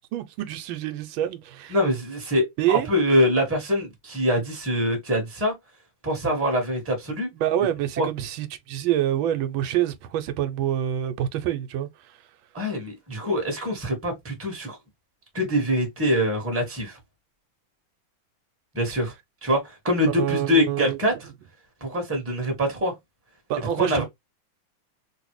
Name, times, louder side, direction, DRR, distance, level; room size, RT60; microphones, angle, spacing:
voice 1, 0.1-1.8 2.6-2.9 7.3-12.3 20.1-21.0 23.5-24.0, right 11 dB, 85° right, 1.4 m, -26 dB
voice 2, 1.7-5.5 6.0-7.3 8.0-8.1 12.5-14.8 15.3-17.0 18.7-19.1 19.4-21.1 21.8-22.9 23.6-24.0, equal, 10° right, 1.0 m, -24 dB
3.2 x 2.5 x 3.1 m
omnidirectional pair, 2.2 m